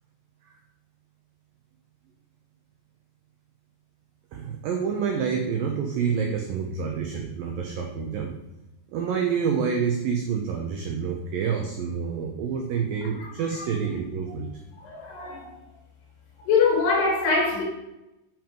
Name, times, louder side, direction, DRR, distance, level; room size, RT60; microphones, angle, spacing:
voice 1, 4.3-8.3 8.9-14.5, right 6 dB, 85° right, 2.0 m, -28 dB
voice 2, 14.8-15.4 16.5-17.6, left 4 dB, 65° left, 5.0 m, -23 dB
8.7 x 5.9 x 5.3 m
omnidirectional pair, 5.1 m